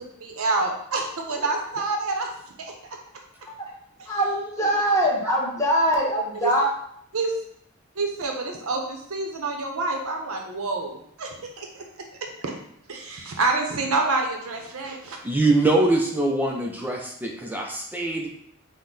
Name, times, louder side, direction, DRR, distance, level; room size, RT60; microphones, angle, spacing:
voice 1, 0.2-2.3 2.6-2.7 6.4-6.5 7.1-7.3 8.0-11.3 11.6-11.8 12.4-12.5 12.9-15.2, right 3 dB, 75° right, 2 dB, 0.7 m, -27 dB
voice 2, 4.1-6.7, equal, 15° left, -4 dB, 1.0 m, -22 dB
voice 3, 15.2-18.3, right 2 dB, 10° right, 1 dB, 0.4 m, -23 dB
6.1 x 2.1 x 3.8 m, 0.69 s
head